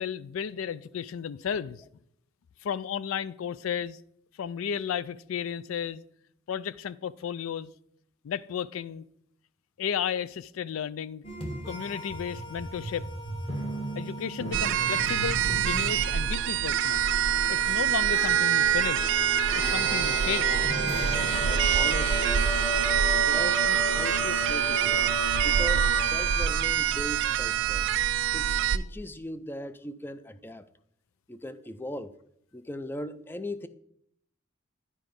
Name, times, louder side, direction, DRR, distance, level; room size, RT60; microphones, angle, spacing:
voice 1, 0.0-1.8 2.6-4.0 4.4-6.0 6.5-7.7 8.2-9.0 9.8-11.2 11.7-13.1 14.0-17.1 17.5-19.2 19.5-20.5, left 8 dB, 80° left, 0.4 m, -33 dB
sound 1, 11.2-26.7, left 1 dB, 30° left, 1.4 m, -34 dB
sound 2, 14.5-28.8, right 10 dB, 60° right, 0.4 m, -25 dB
voice 2, 21.4-22.5 23.1-27.9 28.3-30.7 31.3-32.2 32.5-33.7, left 1 dB, 10° left, 0.4 m, -39 dB
9.8 x 4.9 x 5.2 m
head